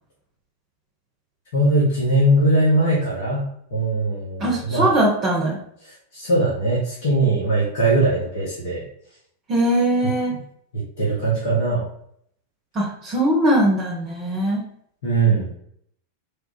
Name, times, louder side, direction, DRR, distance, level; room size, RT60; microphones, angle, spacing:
voice 1, 1.5-3.4 3.7-4.9 5.8-8.8 10.3-10.4 10.7-11.8 15.0-15.5, right 2 dB, 60° left, -5 dB, 1.2 m, -20 dB
voice 2, 4.4-5.6 9.5-10.4 12.7-14.6, right 1 dB, 30° right, -2 dB, 0.8 m, -20 dB
3.5 x 2.3 x 4.2 m, 0.68 s
figure-of-eight pair, 90°, 0 cm